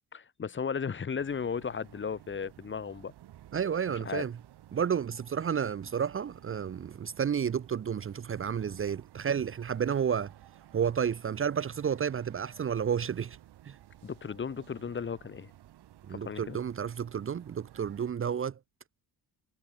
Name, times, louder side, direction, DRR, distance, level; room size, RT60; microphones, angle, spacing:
voice 1, 0.1-3.1 3.9-4.2 14.0-15.5 16.1-16.6, left 6 dB, 30° left, 1.7 m, -35 dB
sound 1, 1.2-18.1, right 13 dB, 80° right, 6.0 m, -55 dB
voice 2, 3.5-4.3 4.7-10.3 10.7-13.4 13.7-13.8 16.1-18.6, right 7 dB, 35° right, 0.8 m, -31 dB
cardioid pair, 145°, 39 cm